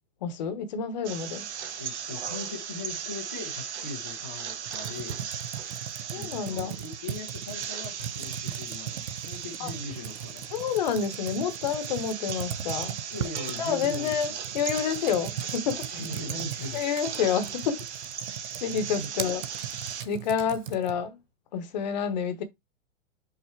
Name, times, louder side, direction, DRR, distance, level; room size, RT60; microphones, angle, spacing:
voice 1, 0.2-1.4 6.1-6.8 9.6-9.7 10.5-12.9 13.6-15.9 16.7-17.8 18.6-19.4 20.0-21.2 21.5-22.4, left 7 dB, 35° left, 0.9 m, -29 dB
sound 1, 1.0-20.0, right 8 dB, 60° right, 1.2 m, -37 dB
voice 2, 1.8-5.2 6.1-10.5 13.1-14.4 15.8-16.8 18.7-19.4, left 3 dB, 10° left, 0.4 m, -40 dB
Computer keyboard, 4.7-21.1, right 9 dB, 85° right, 1.0 m, -39 dB
Camera, 14.0-14.1 14.5-15.3 16.2-16.3 16.5-17.1 18.2-18.5 18.9-19.0 19.6-20.1 20.4-20.5, right 6 dB, 35° right, 1.7 m, -46 dB
5.8 x 4.1 x 4.5 m
hypercardioid pair, 175°, 38 cm